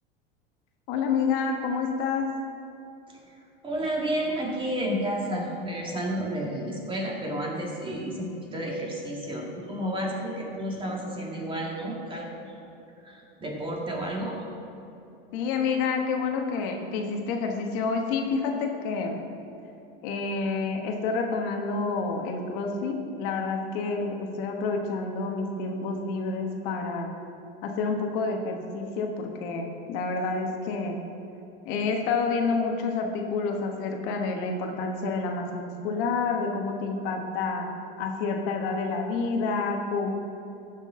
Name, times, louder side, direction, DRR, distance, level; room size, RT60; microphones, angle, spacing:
voice 1, 0.9-2.3 15.3-19.3 20.0-27.1 27.6-31.0 31.6-37.7 38.0-40.2, left 4 dB, 60° left, 2 dB, 1.3 m, -28 dB
voice 2, 3.6-12.3 13.0-14.4, right 1 dB, 15° right, -2 dB, 1.9 m, -31 dB
14.0 x 6.3 x 3.8 m, 2.9 s
supercardioid pair, 120°, 30 cm